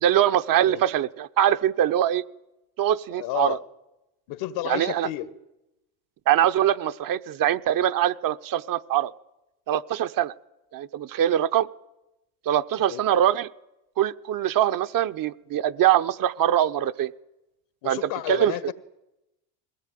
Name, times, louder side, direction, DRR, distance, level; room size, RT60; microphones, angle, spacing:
voice 1, 0.0-2.2 2.8-3.6 4.7-5.1 6.3-9.1 9.7-10.3 10.7-11.7 12.5-13.5 14.0-17.1 17.9-18.0 18.3-18.5, right 11 dB, 45° right, 11 dB, 0.9 m, -23 dB
voice 2, 3.1-3.6 4.3-5.3 12.9-13.2 17.8-18.7, left 14 dB, 70° left, 13 dB, 1.8 m, -31 dB
21.0 x 17.5 x 9.3 m, 0.94 s
supercardioid pair, 90°, 45 cm